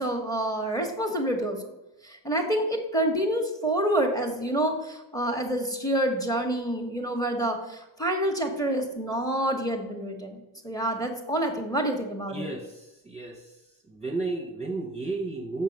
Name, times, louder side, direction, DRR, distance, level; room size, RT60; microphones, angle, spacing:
voice 1, 0.0-1.6 2.0-12.5, right 1 dB, 10° left, 4 dB, 1.2 m, -28 dB
voice 2, 12.3-13.6 13.8-15.6, right 3 dB, 15° right, -1 dB, 1.0 m, -33 dB
7.3 x 5.7 x 5.3 m, 0.97 s
wide cardioid pair, 145°, 44 cm